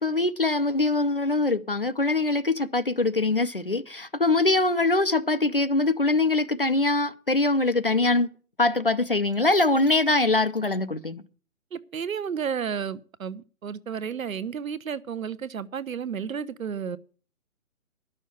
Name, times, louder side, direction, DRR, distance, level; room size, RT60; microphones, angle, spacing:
voice 1, 0.0-8.3 8.6-11.2, left 2 dB, 40° left, 0.5 m, -23 dB
voice 2, 11.7-17.0, right 7 dB, 70° right, 0.9 m, -32 dB
11.0 x 6.4 x 8.2 m
hypercardioid pair, 175°, 43 cm